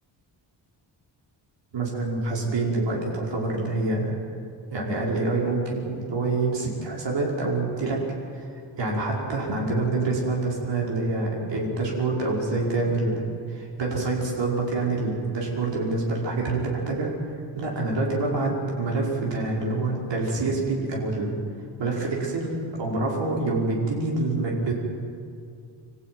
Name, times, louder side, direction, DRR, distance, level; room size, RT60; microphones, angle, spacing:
voice 1, 1.7-4.2 4.7-8.0 8.3-8.4 8.8-17.1 17.5-21.3 21.8-24.7, right 3 dB, 65° right, -2 dB, 5.4 m, -26 dB
27.0 x 15.0 x 9.5 m, 2.4 s
wide cardioid pair, 165°, 47 cm